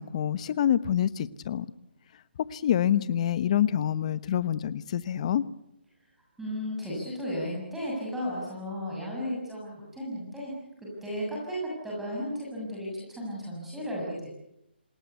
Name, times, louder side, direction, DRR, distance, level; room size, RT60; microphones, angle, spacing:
voice 1, 0.0-1.7 2.5-5.4, left 10 dB, 35° left, 16 dB, 1.1 m, -26 dB
voice 2, 6.4-10.5 10.8-14.3, equal, 5° right, -4 dB, 7.1 m, -34 dB
27.5 x 20.5 x 8.3 m, 0.81 s
hypercardioid pair, 155°, 6 cm